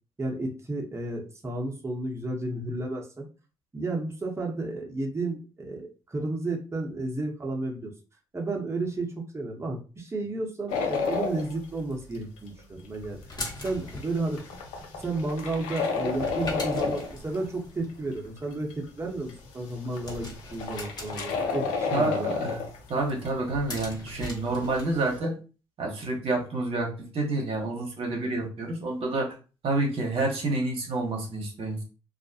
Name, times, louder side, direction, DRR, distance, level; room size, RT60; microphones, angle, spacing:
voice 1, 0.2-3.3 3.7-7.9 8.3-13.2 13.6-14.4 14.9-22.4, right 2 dB, 25° right, -1 dB, 0.8 m, -32 dB
sound 1, 10.7-11.5 12.1-12.6 13.0-13.1 13.4-13.5 13.9-17.4 18.4-18.5 18.7-18.8 19.3-19.4 19.8-23.9 24.2-24.6 24.9-25.1, left 5 dB, 80° left, 0.5 m, -30 dB
sound 2, 12.8-24.8, left 2 dB, 35° left, 1.2 m, -42 dB
voice 2, 21.9-22.6 22.9-25.4 25.8-29.3 29.6-31.8, right 2 dB, 60° right, 0 dB, 0.9 m, -28 dB
2.4 x 2.0 x 2.7 m, 0.34 s
hypercardioid pair, 50°, 11 cm